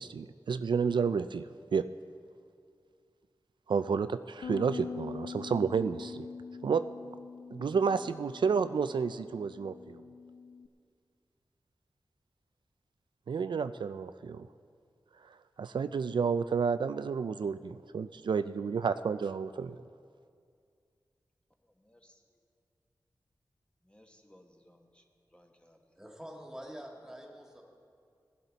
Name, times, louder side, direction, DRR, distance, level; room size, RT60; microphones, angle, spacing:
voice 1, 0.0-1.5 1.7-1.8 3.7-6.3 6.6-6.8 7.5-10.0 13.3-14.5 15.3-19.8, right 6 dB, 75° right, 12 dB, 0.3 m, -31 dB
Bass guitar, 4.4-10.7, left 5 dB, 85° left, 0.5 m, -44 dB
voice 2, 21.6-22.0 23.8-25.0 25.3-26.0, left 1 dB, 15° left, 2 dB, 1.2 m, -62 dB
voice 3, 26.0-27.6, equal, 5° right, 0 dB, 2.0 m, -46 dB
17.5 x 11.0 x 4.0 m, 2.3 s
wide cardioid pair, 85°, 8 cm